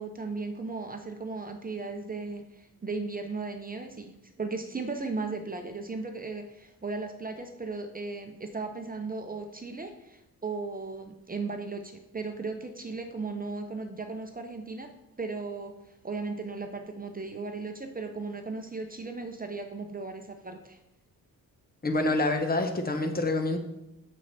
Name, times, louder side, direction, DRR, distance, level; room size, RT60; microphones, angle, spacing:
voice 1, 0.0-14.9 15.2-15.7 16.0-20.8, right 3 dB, 25° right, 5 dB, 0.8 m, -36 dB
voice 2, 21.8-23.6, left 2 dB, 25° left, 6 dB, 1.1 m, -27 dB
6.5 x 6.3 x 4.3 m, 0.88 s
cardioid pair, 80°, 36 cm